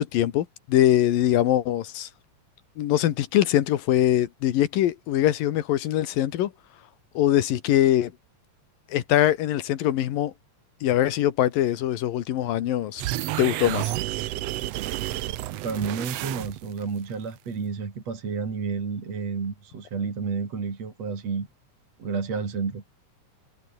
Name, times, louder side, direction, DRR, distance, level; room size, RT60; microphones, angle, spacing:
voice 1, 0.0-2.1 2.8-6.5 7.1-8.1 8.9-10.3 10.8-13.0 13.4-13.9, left 12 dB, 85° left, 3.2 m, -22 dB
sound 1, 13.0-16.8, right 15 dB, 85° right, 1.4 m, -30 dB
voice 2, 15.6-21.5 22.0-22.8, right 5 dB, 50° right, 4.9 m, -30 dB
omnidirectional pair, 3.9 m